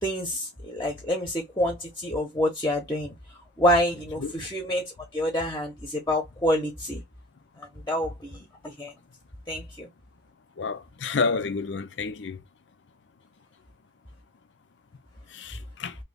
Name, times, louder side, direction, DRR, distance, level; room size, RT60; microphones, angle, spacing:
voice 1, 0.0-3.1 3.6-7.0 7.6-8.9 9.5-9.9, left 1 dB, 15° left, 0.8 m, -27 dB
voice 2, 10.6-12.4 15.3-16.0, left 4 dB, 80° left, 0.5 m, -29 dB
2.9 x 2.8 x 3.4 m
head